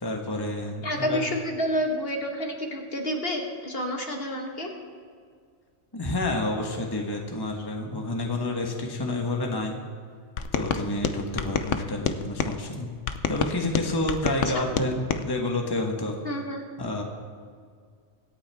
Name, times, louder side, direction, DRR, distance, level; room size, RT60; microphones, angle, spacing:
voice 1, 0.0-1.2 5.9-9.8 10.5-12.9 13.3-16.2 16.8-17.0, left 2 dB, 20° left, 1 dB, 1.3 m, -29 dB
voice 2, 0.8-4.7 14.2-14.6 16.2-16.6, equal, 55° left, 1 dB, 1.8 m, -29 dB
sound 1, 10.4-12.6 13.1-15.2, left 7 dB, 85° left, 1.1 m, -28 dB
25.0 x 9.0 x 3.5 m, 2.1 s
omnidirectional pair, 1.2 m